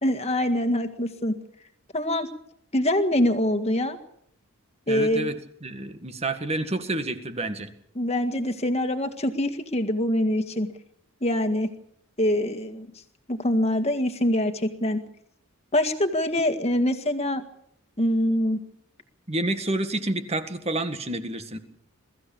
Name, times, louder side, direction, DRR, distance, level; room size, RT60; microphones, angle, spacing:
voice 1, 0.0-1.3 1.9-2.3 2.7-4.0 4.9-5.3 8.0-10.7 11.2-11.7 12.2-12.9 13.3-15.0 15.7-17.4 18.0-18.6, left 1 dB, 30° left, 7 dB, 1.9 m, -24 dB
voice 2, 4.9-5.4 5.6-7.7 19.3-21.6, right 2 dB, 30° right, 9 dB, 1.8 m, -29 dB
22.5 x 14.5 x 8.7 m, 0.71 s
head